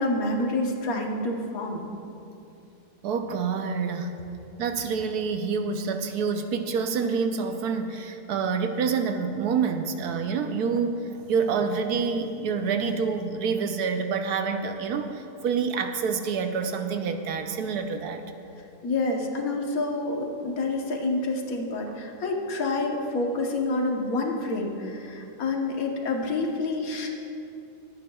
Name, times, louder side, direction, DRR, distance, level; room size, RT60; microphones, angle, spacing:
voice 1, 0.0-1.9 18.8-27.1, left 2 dB, 60° left, 1 dB, 1.5 m, -28 dB
voice 2, 3.0-4.1 4.6-18.2, right 5 dB, 75° right, 6 dB, 1.2 m, -27 dB
22.5 x 9.0 x 2.3 m, 2.8 s
omnidirectional pair, 1.7 m